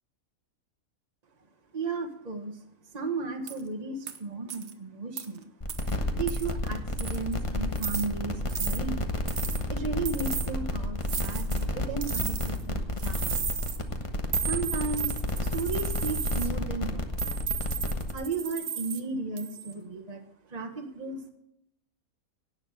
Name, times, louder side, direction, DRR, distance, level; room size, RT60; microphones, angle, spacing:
voice 1, 1.7-2.6 2.9-5.7 6.1-9.0 9.7-13.7 14.4-17.3 18.1-21.3, right 4 dB, 30° right, 4 dB, 1.5 m, -35 dB
sound 1, 3.5-3.6 4.1-4.2 4.5-4.7 5.2-5.3 5.7-5.9 6.3-6.5 7.0-7.3 7.8-8.1 8.5-8.8 9.3-9.6 10.1-10.5 11.1-11.6 12.0-12.6 13.0-13.8 14.3-16.5 17.2-19.0 19.4-19.7, right 7 dB, 55° right, 1.3 m, -34 dB
sound 2, 5.6-18.1, left 1 dB, 25° left, 1.2 m, -31 dB
17.5 x 6.7 x 6.5 m, 0.77 s
omnidirectional pair, 1.5 m